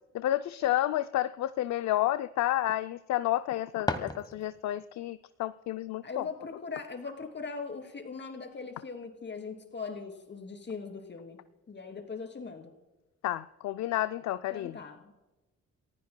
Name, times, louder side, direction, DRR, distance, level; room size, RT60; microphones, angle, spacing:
voice 1, 0.1-6.3 13.2-14.8, left 14 dB, 65° left, 12 dB, 0.5 m, -30 dB
sound 1, 3.3-4.8, left 2 dB, 15° left, 1.2 m, -36 dB
voice 2, 6.0-11.4 11.7-12.7 14.5-15.1, left 4 dB, 35° left, 4 dB, 3.0 m, -40 dB
29.5 x 15.5 x 2.2 m, 1.1 s
cardioid pair, 90°, 30 cm